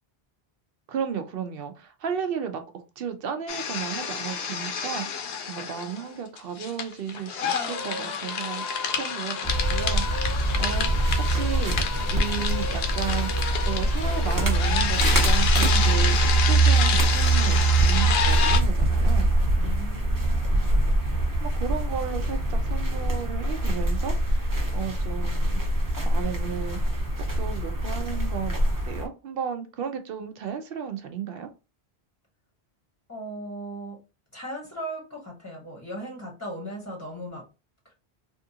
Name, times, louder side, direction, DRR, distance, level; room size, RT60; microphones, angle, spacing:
voice 1, 0.9-19.3 21.4-25.6 26.0-26.8 27.2-31.5, right 7 dB, 65° right, 0.7 m, -34 dB
sound 1, 3.5-6.1 6.4-18.6, left 6 dB, 70° left, 0.8 m, -29 dB
voice 2, 7.3-8.2 19.6-20.7 33.1-34.0 34.3-37.5 37.8-37.9, right 1 dB, 20° left, 0.7 m, -38 dB
sound 2, 9.4-29.0, right 2 dB, 20° right, 0.7 m, -23 dB
3.5 x 2.4 x 2.7 m
omnidirectional pair, 1.1 m